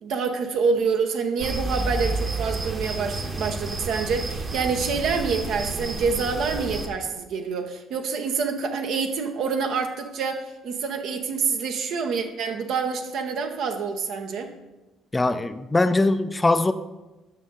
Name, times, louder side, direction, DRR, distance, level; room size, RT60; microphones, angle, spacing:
voice 1, 0.0-14.5, right 5 dB, 65° right, 5 dB, 0.9 m, -27 dB
sound 1, 1.4-6.9, right 2 dB, 40° right, 1.2 m, -30 dB
voice 2, 15.1-16.7, left 2 dB, 20° left, 11 dB, 0.5 m, -21 dB
8.9 x 6.2 x 3.8 m, 1.1 s
hypercardioid pair, 55°, 0 cm